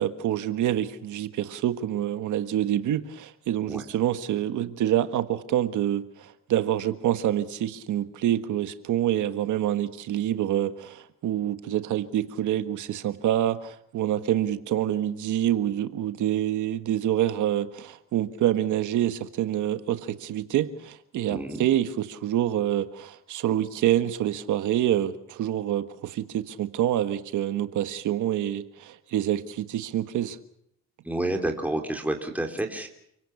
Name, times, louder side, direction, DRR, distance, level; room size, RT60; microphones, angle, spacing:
voice 1, 0.0-30.4, right 12 dB, 80° right, 10 dB, 1.5 m, -27 dB
voice 2, 21.3-21.6 31.0-32.9, right 1 dB, 5° right, 3 dB, 3.3 m, -29 dB
29.5 x 17.5 x 7.1 m, 0.73 s
cardioid pair, 90°, 30 cm